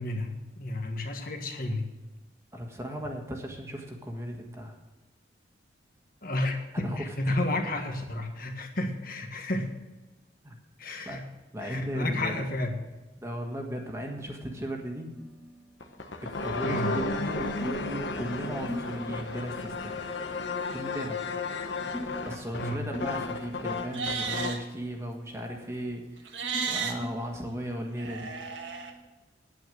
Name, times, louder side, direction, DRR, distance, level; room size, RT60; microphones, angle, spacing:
voice 1, 0.0-1.9 6.2-9.7 10.8-11.3 11.6-12.8 16.6-16.9 22.5-22.8, left 1 dB, 50° left, 4 dB, 1.6 m, -31 dB
voice 2, 2.5-4.8 6.7-7.6 10.4-10.6 11.0-11.2 11.5-12.4 13.2-15.1 16.2-20.0 20.7-21.2 22.2-28.3, equal, 15° right, 1 dB, 1.5 m, -37 dB
sound 1, 12.9-29.0, equal, ahead, 1.8 m, -44 dB
sound 2, 15.8-24.7, left 3 dB, 75° left, 1.1 m, -33 dB
Livestock farm animals working animals, 23.8-24.6 26.3-26.9 28.0-28.9, right 5 dB, 85° right, 1.5 m, -33 dB
9.4 x 9.2 x 6.5 m, 1.1 s
head